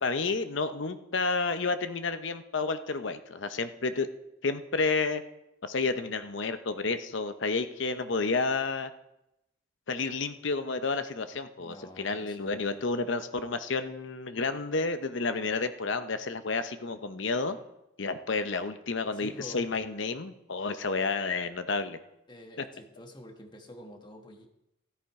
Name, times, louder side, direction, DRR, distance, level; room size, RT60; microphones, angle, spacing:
voice 1, 0.0-4.1 4.4-5.2 5.6-8.9 9.9-17.6 18.0-22.0 22.6-22.7, left 3 dB, 70° left, 10 dB, 0.8 m, -30 dB
voice 2, 11.6-12.9 19.1-19.7 22.3-24.5, equal, 25° left, 4 dB, 1.3 m, -47 dB
13.5 x 10.5 x 4.8 m, 0.88 s
head